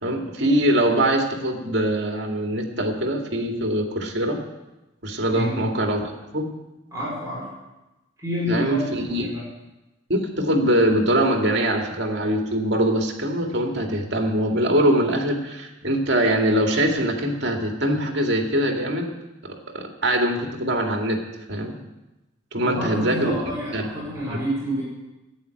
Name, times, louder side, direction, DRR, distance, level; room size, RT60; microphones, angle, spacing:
voice 1, 0.0-4.4 5.0-6.5 8.5-9.3 10.1-19.1 19.4-21.2 21.5-21.8 22.5-23.4 23.7-23.9 24.3-24.4, right 1 dB, 60° right, 2 dB, 2.2 m, -23 dB
voice 2, 5.3-5.7 6.9-7.5 8.2-9.5 22.6-24.8, equal, 15° right, -6 dB, 5.0 m, -28 dB
11.5 x 8.9 x 9.5 m, 1.0 s
head